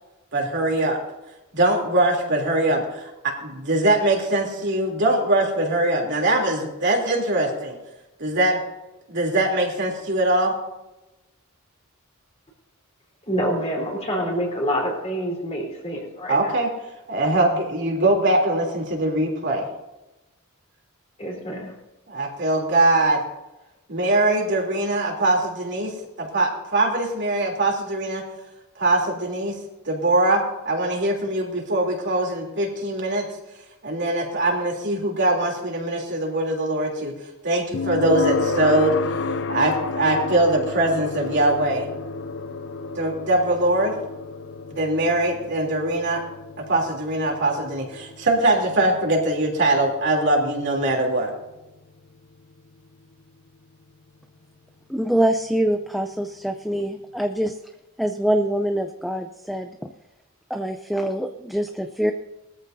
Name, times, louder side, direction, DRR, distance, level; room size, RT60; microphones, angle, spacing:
voice 1, 0.3-1.0 1.5-7.8 8.2-8.6 9.1-10.5 16.3-16.7 17.1-19.7 22.1-23.2 23.9-25.9 26.2-28.2 28.8-29.5 29.8-33.3 33.8-37.1 37.4-38.9 39.5-41.9 42.9-43.9 44.7-46.2 46.7-51.3, right 2 dB, 55° right, 3.1 m, -22 dB
voice 2, 13.3-16.5 21.2-21.7, equal, 30° left, 3.7 m, -27 dB
sound 1, 37.7-52.7, left 4 dB, 55° left, 0.6 m, -31 dB
voice 3, 54.9-57.6 58.0-59.7 60.5-62.1, right 1 dB, ahead, 0.5 m, -24 dB
20.5 x 14.0 x 2.7 m
head